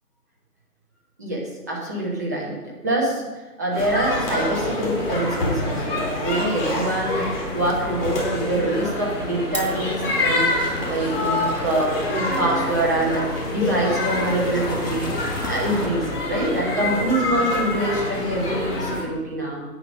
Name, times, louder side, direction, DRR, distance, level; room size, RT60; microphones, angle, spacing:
voice 1, 1.2-2.6 2.8-19.6, right 1 dB, 10° right, -3 dB, 1.1 m, -25 dB
sound 1, 3.7-19.0, left 2 dB, 35° left, 3.9 m, -26 dB
sound 2, 4.9-15.9, left 2 dB, 85° left, 3.2 m, -38 dB
Glass, 6.9-13.2, right 2 dB, 80° right, 2.9 m, -41 dB
10.0 x 8.7 x 5.3 m, 1.2 s
figure-of-eight pair, 155°, 48 cm